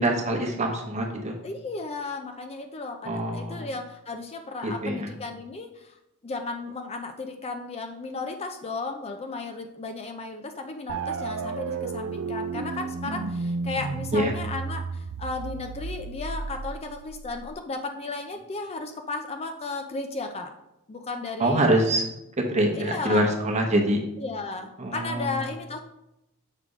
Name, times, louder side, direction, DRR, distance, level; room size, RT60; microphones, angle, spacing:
voice 1, 0.0-1.4 3.0-3.7 4.6-5.1 14.1-14.4 21.4-22.0 22.4-24.0 24.8-25.4, right 1 dB, 30° right, 2 dB, 1.0 m, -25 dB
voice 2, 1.4-5.9 6.2-20.5 20.9-21.7 22.7-23.3 24.2-25.8, left 3 dB, 30° left, 6 dB, 0.5 m, -34 dB
sound 1, 10.9-17.5, right 4 dB, 65° right, 0.4 m, -33 dB
6.6 x 3.4 x 4.9 m, 0.87 s
head